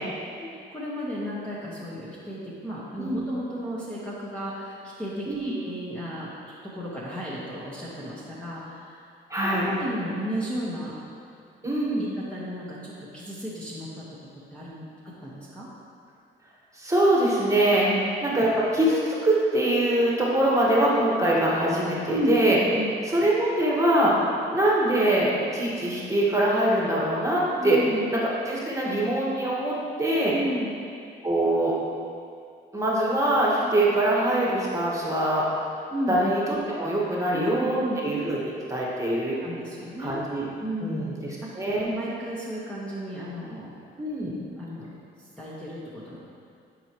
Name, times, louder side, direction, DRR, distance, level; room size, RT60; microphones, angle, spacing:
voice 1, 0.7-6.3 6.7-9.0 9.4-10.9 12.0-14.1 14.5-15.7 17.9-18.2 22.1-22.3 22.7-22.9 27.6-28.1 30.3-30.7 33.6-33.8 35.9-36.2 37.3-38.0 39.2-40.2 40.6-41.2 41.5-41.6 41.9-43.7 44.6-44.9 45.4-46.2, equal, 5° left, -8 dB, 1.4 m, -33 dB
voice 2, 5.2-5.6 9.3-9.7 11.6-12.1 16.7-17.9 18.2-22.6 23.0-27.8 28.1-30.3 31.2-31.8 32.7-35.5 36.1-39.4 40.0-40.5 40.8-41.9 44.0-44.3, right 1 dB, 15° right, -5 dB, 1.6 m, -23 dB
10.5 x 4.8 x 3.1 m, 2.4 s
cardioid pair, 90°, 20 cm